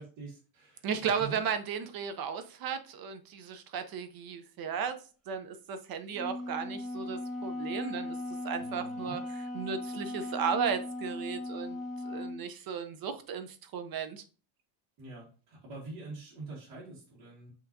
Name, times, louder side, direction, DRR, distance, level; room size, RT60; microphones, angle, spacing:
voice 1, 0.0-0.8 1.2-1.4 8.6-9.2 15.0-17.5, right 3 dB, 85° right, 1.9 m, -45 dB
voice 2, 0.8-5.0 5.3-8.2 8.4-11.8 12.0-14.2, right 7 dB, 45° right, 0.6 m, -35 dB
Wind instrument woodwind instrument, 6.1-12.4, left 2 dB, ahead, 1.0 m, -38 dB
5.7 x 3.0 x 2.6 m
cardioid pair, 145°, 50 cm